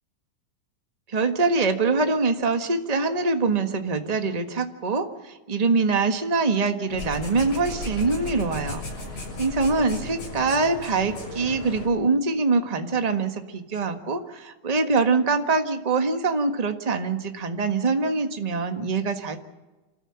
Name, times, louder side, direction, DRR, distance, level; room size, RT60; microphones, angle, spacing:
voice 1, 1.1-8.8 9.4-19.4, right 4 dB, 35° right, 6 dB, 0.6 m, -24 dB
sound 1, 6.9-11.9, left 1 dB, 70° left, 8.0 m, -35 dB
28.0 x 14.0 x 8.7 m, 1.1 s
omnidirectional pair, 3.5 m